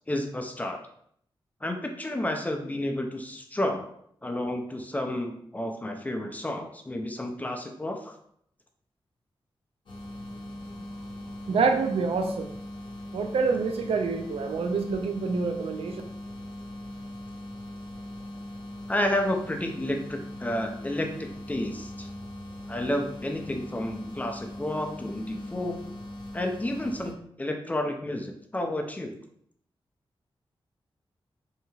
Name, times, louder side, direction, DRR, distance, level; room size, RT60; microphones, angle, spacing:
voice 1, 0.1-0.8 1.6-3.9 4.2-8.1 18.9-22.1 22.7-25.8 26.3-29.1, left 1 dB, 15° left, 3 dB, 0.4 m, -31 dB
sound 1, 9.9-27.1, left 1 dB, 55° left, 0.6 m, -40 dB
voice 2, 11.5-12.5 13.1-16.0, right 4 dB, 80° right, 5 dB, 0.4 m, -27 dB
2.9 x 2.7 x 2.3 m, 0.67 s
wide cardioid pair, 100°, 10 cm